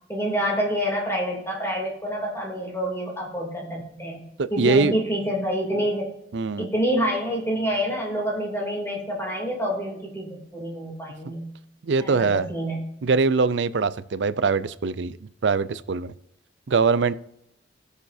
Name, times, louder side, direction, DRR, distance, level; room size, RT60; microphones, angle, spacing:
voice 1, 0.1-4.2 4.5-6.1 6.6-11.5 12.0-12.8, equal, 15° left, -2 dB, 2.9 m, -27 dB
voice 2, 4.4-4.9 6.3-6.7 11.8-12.5 13.0-16.1 16.7-17.1, right 4 dB, 65° right, 15 dB, 0.5 m, -22 dB
17.5 x 7.0 x 2.7 m, 0.77 s
head